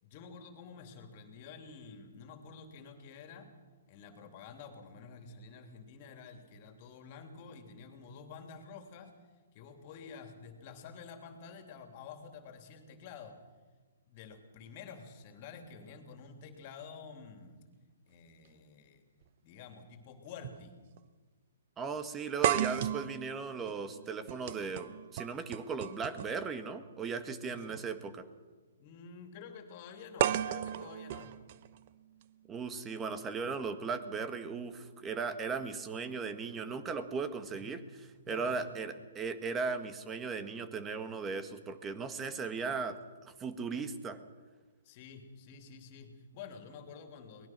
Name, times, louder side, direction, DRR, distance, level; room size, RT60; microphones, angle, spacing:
voice 1, 0.0-3.5 3.9-9.2 9.5-13.4 14.0-17.6 18.1-19.0 19.4-20.8 27.4-27.8 28.8-31.3 37.5-37.7 38.2-38.9 44.8-47.5, left 5 dB, 40° left, 6 dB, 3.1 m, -50 dB
sound 1, 19.2-19.3 20.4-20.6 21.0-21.1 22.4-26.5 27.6-27.8 30.2-32.2, right 11 dB, 45° right, 0.8 m, -34 dB
voice 2, 21.8-28.3 32.5-37.8 38.3-44.2, right 5 dB, 15° right, 10 dB, 1.6 m, -37 dB
23.5 x 19.5 x 6.1 m, 1.3 s
hypercardioid pair, 130°, 0 cm